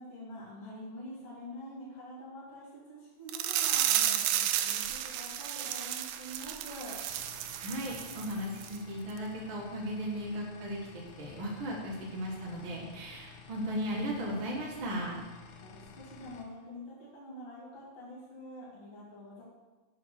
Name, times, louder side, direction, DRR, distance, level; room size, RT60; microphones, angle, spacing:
voice 1, 0.0-7.0 15.4-19.4, left 1 dB, 40° left, -8 dB, 2.8 m, -46 dB
sound 1, 3.3-8.3 8.6-8.8 9.2-9.3, right 11 dB, 85° right, 2.2 m, -32 dB
sound 2, 7.1-16.4, left 5 dB, 75° left, 2.7 m, -52 dB
voice 2, 7.6-15.2, equal, 60° right, -5 dB, 1.3 m, -36 dB
7.6 x 4.7 x 6.4 m, 1.2 s
omnidirectional pair, 4.9 m